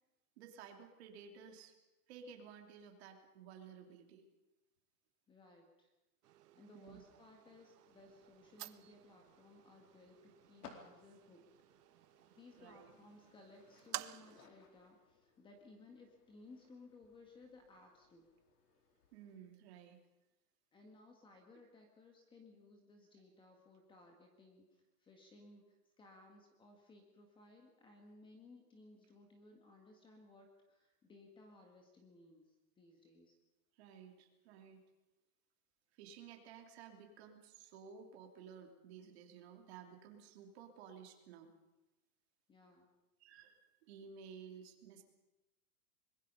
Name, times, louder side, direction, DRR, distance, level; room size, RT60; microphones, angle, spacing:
voice 1, 0.4-1.7 2.1-4.3 6.7-7.0 12.5-12.9 19.1-20.0 33.8-34.8 35.9-41.5 43.2-45.0, right 7 dB, 45° right, 4 dB, 3.0 m, -55 dB
voice 2, 5.3-5.9 6.5-11.4 12.3-18.2 20.7-32.5 32.8-33.4 42.5-42.9, left 2 dB, 10° left, 3 dB, 1.6 m, -61 dB
sound 1, 6.2-14.5, right 13 dB, 85° right, 0.9 m, -53 dB
sound 2, 7.9-19.4, left 5 dB, 80° left, 4.2 m, -64 dB
24.5 x 21.0 x 5.5 m, 1.0 s
supercardioid pair, 170°, 46 cm